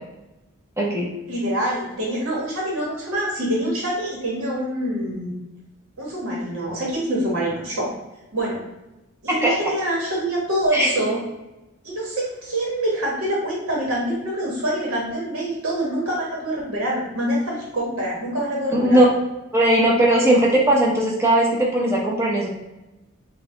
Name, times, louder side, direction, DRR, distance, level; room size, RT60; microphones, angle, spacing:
voice 1, 0.8-1.1 9.3-9.5 10.7-10.9 18.7-19.0 19.5-22.5, right 1 dB, 10° right, -3 dB, 0.6 m, -18 dB
voice 2, 1.3-5.3 6.0-7.9 8.3-8.6 9.2-11.2 11.8-19.0, right 1 dB, 75° right, -4 dB, 1.2 m, -25 dB
4.5 x 2.3 x 3.8 m, 0.99 s
head